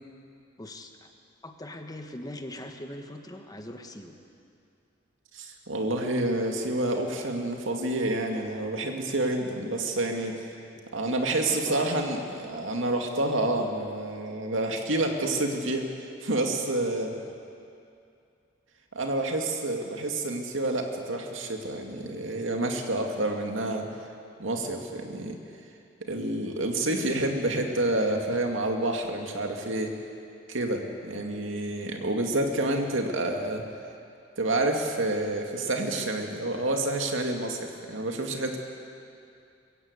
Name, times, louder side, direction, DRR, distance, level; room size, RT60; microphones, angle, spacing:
voice 1, 0.6-1.1 1.4-4.1 11.1-11.2 11.5-12.1 12.3-12.4 17.2-17.3, left 1 dB, 20° left, 5 dB, 1.4 m, -41 dB
voice 2, 5.3-10.5 10.9-15.9 16.2-17.2 18.9-23.9 24.4-25.4 26.0-29.9 30.5-33.6 34.4-38.6, right 2 dB, 85° right, 3 dB, 2.3 m, -28 dB
22.5 x 15.5 x 8.4 m, 2.5 s
head